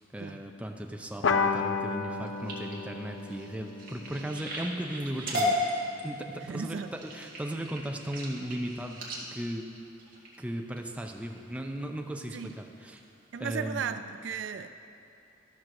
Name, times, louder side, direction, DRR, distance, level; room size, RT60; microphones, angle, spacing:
voice 1, 0.1-5.6 6.0-9.0 9.3-9.7 10.4-13.0 13.4-14.0, right 1 dB, 5° right, 3 dB, 0.5 m, -36 dB
sound 1, 1.2-6.1, left 5 dB, 80° left, 0.5 m, -33 dB
sound 2, 2.1-10.8 11.4-11.7 12.1-12.5 13.0-13.1 13.4-13.5, left 1 dB, 50° right, 1.6 m, -35 dB
voice 2, 6.4-6.9 12.3-12.6 13.3-14.7, right 6 dB, 70° right, 10 dB, 0.3 m, -35 dB
12.5 x 4.5 x 6.3 m, 2.7 s
head